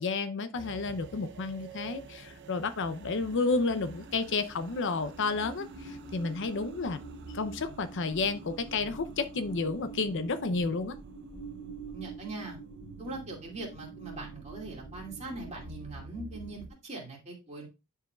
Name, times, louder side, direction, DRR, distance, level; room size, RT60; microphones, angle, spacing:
voice 1, 0.0-7.0 7.3-11.0, left 3 dB, 55° left, 0.6 m, -31 dB
sound 1, 0.6-16.7, right 3 dB, 55° right, 0.7 m, -46 dB
voice 2, 11.9-12.6 13.0-17.7, right 2 dB, 30° right, 2.5 m, -41 dB
10.5 x 4.7 x 2.4 m
head